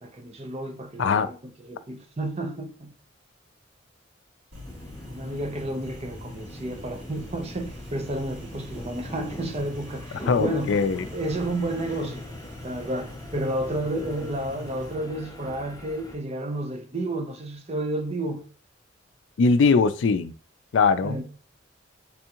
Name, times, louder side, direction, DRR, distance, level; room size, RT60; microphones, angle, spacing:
voice 1, 0.0-1.4 1.6-2.9 5.1-10.7 11.1-12.3 12.6-18.4 21.0-21.2, right 1 dB, 35° right, 0.6 m, -31 dB
sound 1, 4.5-14.9, left 1 dB, 70° right, 1.9 m, -43 dB
sound 2, 4.6-16.2, left 1 dB, 20° left, 0.5 m, -42 dB
voice 2, 10.3-11.1 19.4-20.3 20.7-21.2, left 4 dB, 75° left, 0.4 m, -21 dB
3.5 x 3.4 x 2.9 m
head